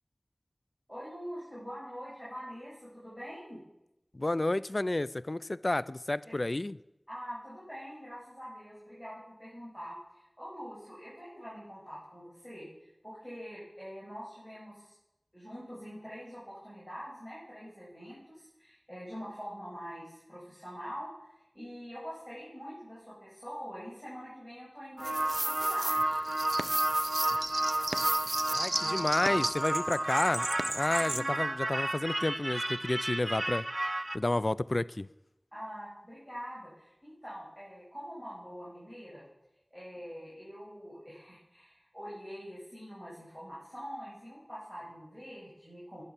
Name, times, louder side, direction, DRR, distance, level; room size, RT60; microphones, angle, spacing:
voice 1, 0.9-3.6 6.2-6.3 7.1-12.7 13.0-14.9 15.3-21.1 21.5-26.2 28.7-29.0 31.0-31.4 35.5-39.2 39.7-46.0, equal, 5° left, 6.4 m, -44 dB
voice 2, 4.1-6.8 28.5-30.5 30.7-33.7 34.1-35.1, left 2 dB, 50° left, 0.4 m, -30 dB
sound 1, 25.0-34.2, right 1 dB, 35° right, 0.5 m, -31 dB
10.5 x 10.0 x 7.2 m
wide cardioid pair, 40°, 0 cm